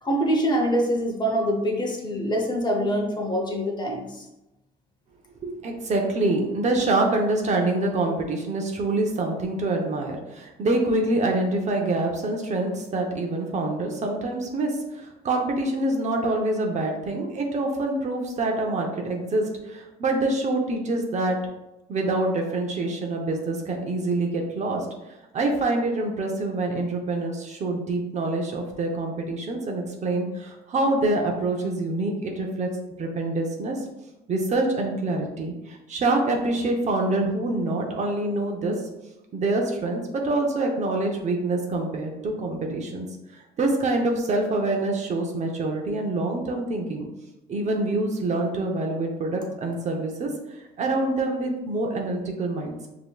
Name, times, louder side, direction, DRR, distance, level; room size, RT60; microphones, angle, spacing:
voice 1, 0.0-4.2, equal, 25° left, 1 dB, 0.8 m, -24 dB
voice 2, 5.4-21.4 21.9-24.9 25.3-32.7 33.0-33.8 34.3-38.7 39.3-43.1 43.3-47.1 47.5-52.9, right 2 dB, 45° right, 1 dB, 0.7 m, -26 dB
5.0 x 2.9 x 2.3 m, 0.96 s
cardioid pair, 110°, 17 cm